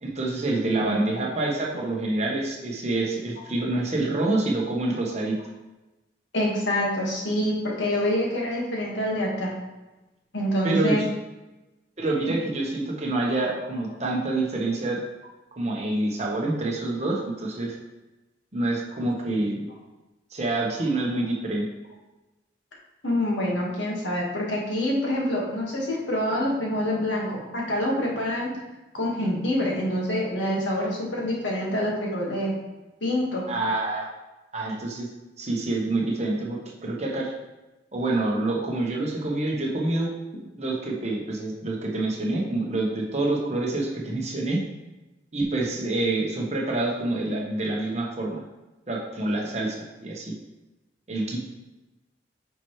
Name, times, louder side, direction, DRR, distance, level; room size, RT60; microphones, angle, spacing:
voice 1, 0.0-5.4 10.6-11.1 12.0-15.0 15.6-17.8 18.5-19.6 20.3-21.6 33.5-34.1 34.5-35.1 35.4-37.3 37.9-40.1 40.6-44.6 45.3-48.4 48.9-50.3 51.1-51.4, right 2 dB, 35° right, -2 dB, 1.1 m, -27 dB
voice 2, 6.3-9.5 10.3-11.0 23.0-28.5 28.9-32.5 33.0-33.4, left 1 dB, 75° left, -3 dB, 1.7 m, -26 dB
9.1 x 4.5 x 3.1 m, 1.1 s
head